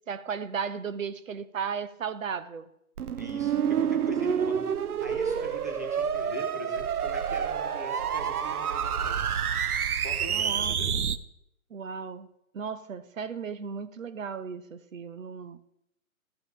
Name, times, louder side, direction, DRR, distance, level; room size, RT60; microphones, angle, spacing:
voice 1, 0.1-2.7 10.3-11.0 11.7-12.3 12.5-15.6, right 6 dB, 60° right, 0.8 m, -35 dB
sound 1, 3.0-11.2, right 8 dB, 90° right, 0.6 m, -28 dB
voice 2, 3.2-9.3 9.9-11.0, left 1 dB, 15° right, 0.4 m, -42 dB
14.0 x 5.3 x 3.1 m
figure-of-eight pair, 145°, 44 cm